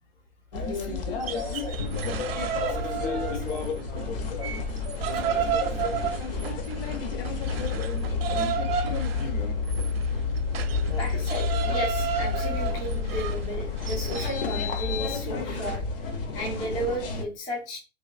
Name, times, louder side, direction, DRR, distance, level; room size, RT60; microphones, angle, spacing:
voice 1, 0.5-1.8 2.6-4.7 5.1-5.5, left 3 dB, 75° left, 3 dB, 1.4 m, -39 dB
sound 1, 0.5-17.2, left 4 dB, 45° left, 0.8 m, -32 dB
sound 2, 1.1-3.8 4.2-14.4, right 9 dB, 50° right, 0.5 m, -33 dB
sound 3, 7.4-15.0, left 5 dB, 90° left, 0.5 m, -31 dB
voice 2, 11.0-15.8 16.3-17.8, right 1 dB, 10° left, 0 dB, 0.4 m, -34 dB
3.0 x 2.6 x 2.4 m, 0.31 s
figure-of-eight pair, 120°, 37 cm